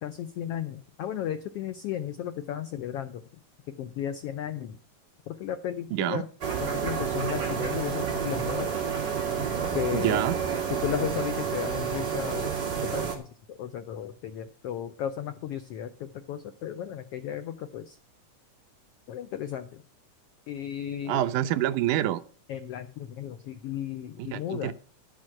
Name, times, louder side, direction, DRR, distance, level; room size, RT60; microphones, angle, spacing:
voice 1, 0.0-3.2 3.8-4.8 5.3-6.2 6.6-8.7 9.7-10.2 10.8-12.5 12.9-13.2 13.5-18.0 19.1-19.8 20.5-21.2 22.5-24.7, left 10 dB, 85° left, 1.3 m, -34 dB
voice 2, 5.9-6.2 9.9-10.4 21.1-22.2 24.3-24.7, right 13 dB, 80° right, 2.2 m, -27 dB
sound 1, 6.4-13.2, right 6 dB, 35° right, 2.7 m, -29 dB
11.5 x 6.2 x 7.5 m
omnidirectional pair, 3.6 m